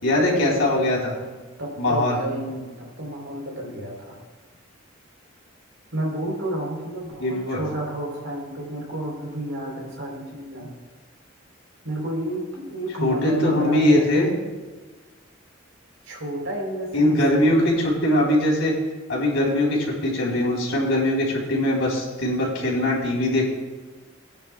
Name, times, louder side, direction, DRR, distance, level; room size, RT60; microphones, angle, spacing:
voice 1, 0.0-1.1 1.8-2.2 7.2-7.6 13.0-14.3 16.9-18.7 19.1-23.5, left 1 dB, 85° left, -3 dB, 3.8 m, -21 dB
voice 2, 1.6-4.2 5.9-10.7 11.8-14.1 16.0-17.6, right 1 dB, 80° right, -1 dB, 3.8 m, -31 dB
18.5 x 10.0 x 2.4 m, 1.3 s
head